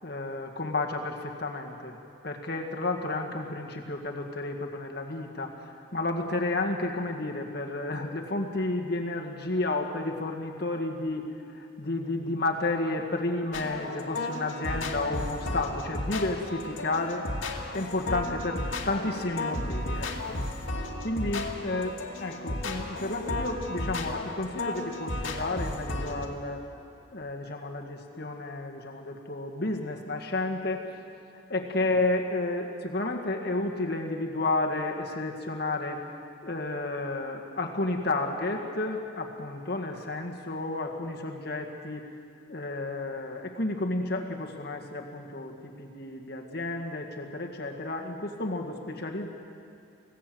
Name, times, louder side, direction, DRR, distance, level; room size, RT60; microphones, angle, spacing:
voice 1, 0.0-2.0 2.2-11.3 11.5-17.3 17.7-20.4 21.0-26.6 27.1-30.9 31.5-36.0 36.4-42.1 42.5-49.3, left 2 dB, 50° left, 2 dB, 1.9 m, -31 dB
sound 1, 13.5-26.3, left 2 dB, 75° left, 2.3 m, -34 dB
25.5 x 17.0 x 7.9 m, 2.5 s
head